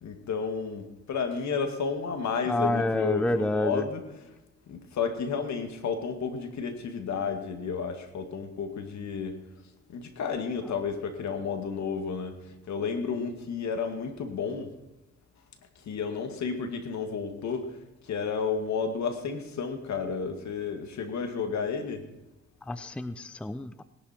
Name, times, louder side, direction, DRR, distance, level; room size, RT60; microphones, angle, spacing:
voice 1, 0.0-4.0 4.7-9.4 9.9-14.7 15.8-17.8 18.0-22.1, left 5 dB, 65° left, 6 dB, 2.1 m, -32 dB
voice 2, 2.5-3.9 22.7-23.8, left 1 dB, 5° left, 13 dB, 0.6 m, -28 dB
19.5 x 11.5 x 4.4 m, 0.99 s
cardioid pair, 90°, 30 cm